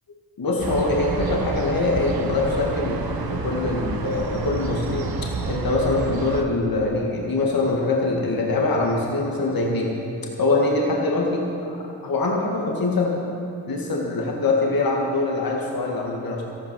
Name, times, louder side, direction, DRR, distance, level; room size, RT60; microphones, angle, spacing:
voice 1, 0.4-9.9 10.4-11.8 12.0-13.2 13.7-16.4, left 2 dB, 55° left, -1 dB, 2.0 m, -23 dB
sound 1, 0.6-6.4, right 4 dB, 60° right, 1.3 m, -29 dB
13.5 x 12.0 x 6.3 m, 2.7 s
supercardioid pair, 45°, 42 cm